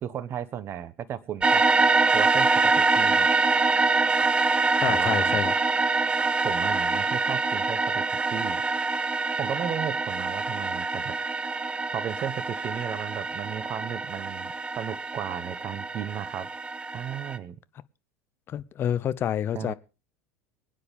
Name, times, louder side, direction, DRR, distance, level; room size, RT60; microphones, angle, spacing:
voice 1, 0.0-1.6 2.1-3.3 4.9-5.4 6.4-8.0 8.3-8.6 9.4-11.1 11.9-16.5 16.9-17.5 19.5-19.7, right 9 dB, 40° right, 1.2 m, -34 dB
sound 1, 1.4-17.4, right 3 dB, 15° right, 0.9 m, -25 dB
voice 2, 4.8-5.5 18.5-19.7, left 10 dB, 40° left, 0.8 m, -28 dB
23.5 x 9.7 x 3.6 m
hypercardioid pair, 80°, 6 cm